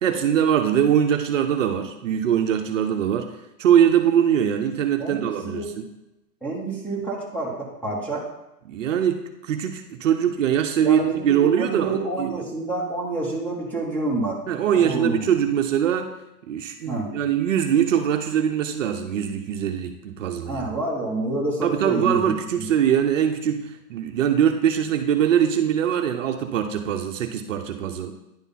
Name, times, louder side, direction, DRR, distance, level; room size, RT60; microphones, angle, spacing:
voice 1, 0.0-3.3 3.6-5.9 8.7-12.4 14.5-16.1 16.5-20.6 21.6-28.1, right 9 dB, 55° right, 5 dB, 0.7 m, -22 dB
voice 2, 5.0-5.7 6.4-8.3 10.8-14.4 14.7-15.3 16.9-17.1 20.5-22.3, right 2 dB, 5° left, -3 dB, 1.1 m, -28 dB
10.0 x 3.4 x 4.1 m, 0.91 s
hypercardioid pair, 135°, 46 cm